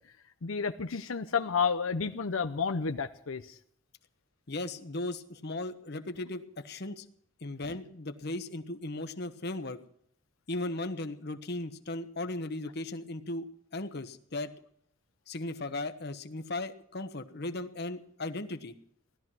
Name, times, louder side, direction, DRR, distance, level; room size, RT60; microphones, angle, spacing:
voice 1, 0.4-3.6 7.6-7.8, left 5 dB, 85° left, 7 dB, 0.7 m, -31 dB
voice 2, 4.5-7.1 7.4-9.8 10.5-13.4 13.7-14.5 15.3-18.7, left 2 dB, 55° left, 9 dB, 1.2 m, -37 dB
17.5 x 13.0 x 6.2 m, 0.66 s
head